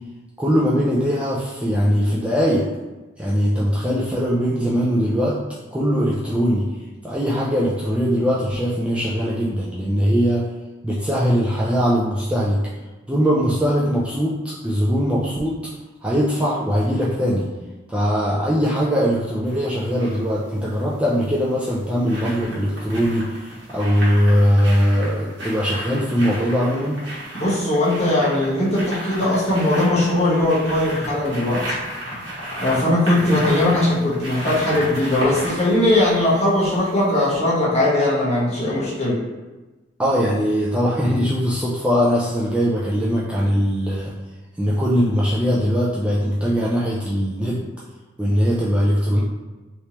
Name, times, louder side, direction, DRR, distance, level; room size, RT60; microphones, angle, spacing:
voice 1, 0.4-2.7 3.2-5.4 5.7-6.6 7.0-10.5 10.8-12.6 13.1-15.6 16.0-17.5 17.9-27.0 40.0-44.1 44.6-47.7 48.2-49.2, equal, 5° right, -7 dB, 0.3 m, -20 dB
sound 1, 19.5-20.2 21.4-37.0 37.3-37.4, equal, 75° right, 1.2 m, -33 dB
voice 2, 27.4-31.8 32.6-39.2, left 1 dB, 35° left, -8 dB, 1.1 m, -19 dB
3.3 x 3.0 x 2.8 m, 1.2 s
head